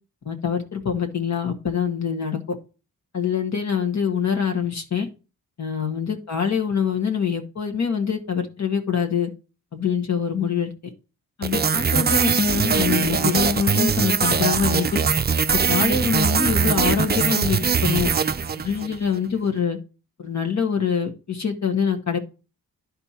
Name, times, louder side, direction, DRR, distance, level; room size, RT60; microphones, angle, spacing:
voice 1, 0.2-2.4 3.1-5.1 5.6-9.3 9.7-10.9 11.4-15.0 15.7-18.1 18.6-19.8 20.2-22.2, left 6 dB, 50° left, 4 dB, 1.6 m, -24 dB
sound 1, 11.4-19.0, right 6 dB, 30° right, 0.5 m, -21 dB
10.5 x 4.5 x 4.3 m, 0.33 s
cardioid pair, 60°, 36 cm